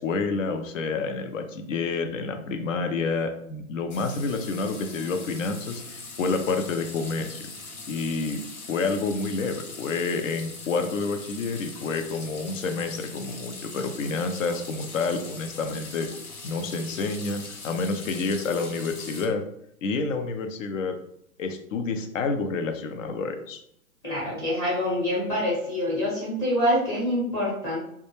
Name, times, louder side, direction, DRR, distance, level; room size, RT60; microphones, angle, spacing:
voice 1, 0.0-7.5 7.9-8.4 8.7-16.1 16.4-19.4 19.8-21.0 21.4-23.6, left 4 dB, 65° left, 6 dB, 0.5 m, -29 dB
sound 1, 3.9-19.3, left 3 dB, 80° left, 0.9 m, -41 dB
voice 2, 24.0-27.8, left 1 dB, 10° left, -8 dB, 0.6 m, -26 dB
2.2 x 2.0 x 3.0 m, 0.73 s
hypercardioid pair, 140°, 42 cm